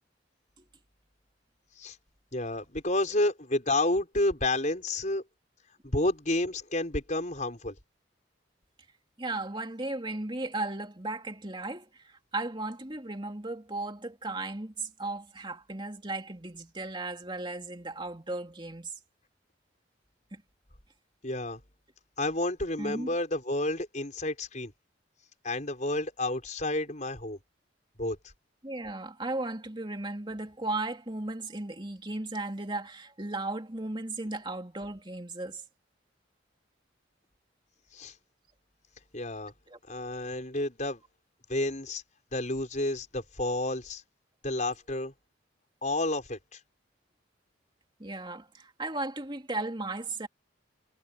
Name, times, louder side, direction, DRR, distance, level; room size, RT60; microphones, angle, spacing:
voice 1, 2.3-5.2 5.8-7.7 21.2-21.6 22.2-24.7 25.4-27.4 28.0-28.2 37.9-38.1 39.1-39.5 39.9-41.0 41.5-42.0 42.3-44.0 44.4-45.1 45.8-46.6, left 2 dB, 40° left, 5.5 m, -30 dB
voice 2, 9.2-18.9 20.3-20.4 22.8-23.1 28.6-35.6 39.7-39.8 48.0-50.3, right 2 dB, 25° right, 2.9 m, -36 dB
head